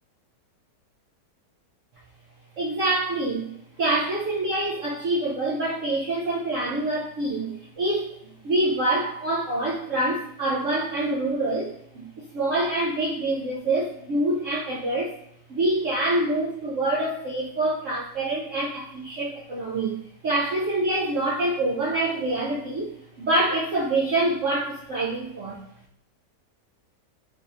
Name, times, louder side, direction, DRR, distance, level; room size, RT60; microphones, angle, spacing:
voice 1, 2.6-3.5 3.8-15.1 15.5-20.0 20.2-22.9 23.2-25.6, right 2 dB, 60° right, -6 dB, 0.9 m, -26 dB
3.9 x 3.0 x 2.6 m, 0.72 s
omnidirectional pair, 1.9 m